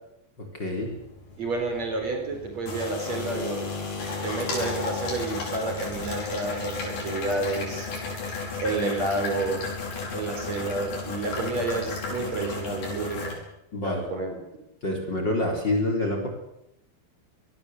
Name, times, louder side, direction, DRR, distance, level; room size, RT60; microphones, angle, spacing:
voice 1, 0.4-0.9 13.7-14.1 14.8-16.3, left 1 dB, 30° left, 2 dB, 4.5 m, -27 dB
sound 1, 0.7-13.3, left 4 dB, 75° left, 7.4 m, -34 dB
voice 2, 1.4-3.7 4.2-7.9 8.6-9.6 10.1-13.4 13.8-14.4, right 2 dB, 45° right, 4 dB, 5.5 m, -30 dB
25.0 x 19.5 x 8.1 m, 0.83 s
omnidirectional pair, 4.4 m